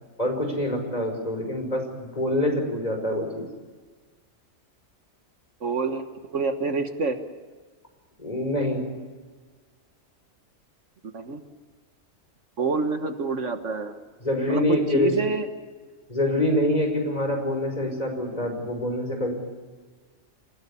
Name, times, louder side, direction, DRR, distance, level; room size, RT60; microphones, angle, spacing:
voice 1, 0.2-3.5 8.2-8.9 14.2-15.1 16.1-19.3, left 1 dB, 30° left, 3 dB, 5.5 m, -25 dB
voice 2, 5.6-6.0 6.3-7.2 11.1-11.4 12.6-14.0 14.5-15.5, right 4 dB, 65° right, 7 dB, 1.7 m, -27 dB
28.0 x 17.0 x 8.5 m, 1.4 s
omnidirectional pair, 1.4 m